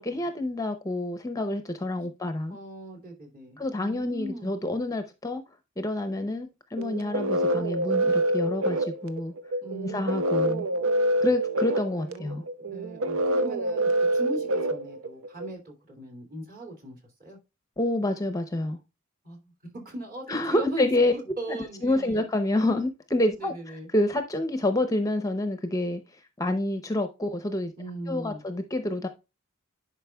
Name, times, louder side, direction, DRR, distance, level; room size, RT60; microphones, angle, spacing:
voice 1, 0.0-2.6 3.6-5.4 5.8-9.3 9.8-10.7 11.2-12.4 17.8-18.8 20.3-21.1 21.5-23.5 23.9-26.0 26.4-27.7 28.1-29.1, left 1 dB, 15° left, 0.6 m, -28 dB
voice 2, 2.5-4.5 9.6-10.0 11.7-17.4 19.2-22.2 23.4-23.9 27.8-28.4, equal, 40° right, 2.8 m, -39 dB
sound 1, 6.8-15.5, right 1 dB, 70° right, 0.6 m, -26 dB
10.5 x 4.9 x 2.3 m
head